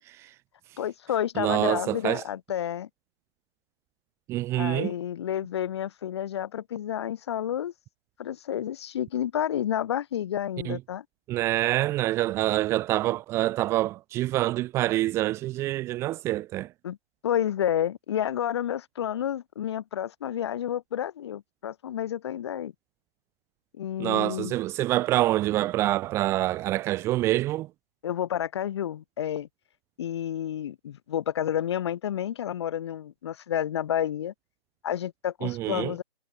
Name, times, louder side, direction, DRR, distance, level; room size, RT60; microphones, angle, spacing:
voice 1, 0.8-2.9 4.6-7.7 8.2-11.0 16.8-17.0 17.2-22.7 23.8-24.5 28.0-29.5 30.0-34.3 34.8-36.0, left 10 dB, 25° left, 2.7 m, -30 dB
voice 2, 1.4-2.2 4.3-4.9 10.7-10.8 11.3-16.7 24.0-27.7 35.4-35.9, right 16 dB, 10° right, 1.8 m, -26 dB
figure-of-eight pair, 155°, 31 cm